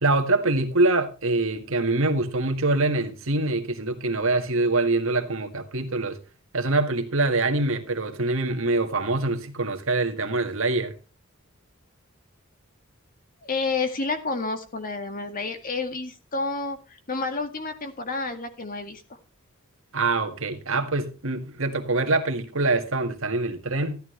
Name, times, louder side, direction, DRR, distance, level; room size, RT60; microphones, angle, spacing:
voice 1, 0.0-6.2 6.5-10.9 19.9-24.0, right 2 dB, 70° right, 1.8 m, -24 dB
voice 2, 13.4-19.0, left 3 dB, 40° left, 1.9 m, -30 dB
14.0 x 11.5 x 3.2 m
head